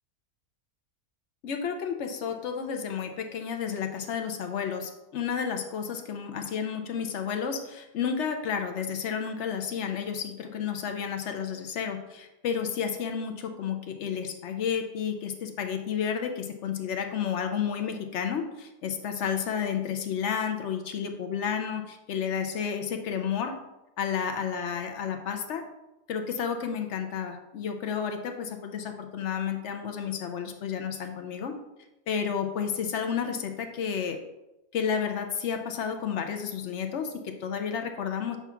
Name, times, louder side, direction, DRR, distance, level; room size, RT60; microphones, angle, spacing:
voice 1, 1.4-23.6 24.0-25.6 26.1-31.6 32.1-34.2 34.7-38.4, left 7 dB, 60° left, 6 dB, 0.8 m, -31 dB
7.0 x 2.4 x 5.6 m, 0.95 s
omnidirectional pair, 1.5 m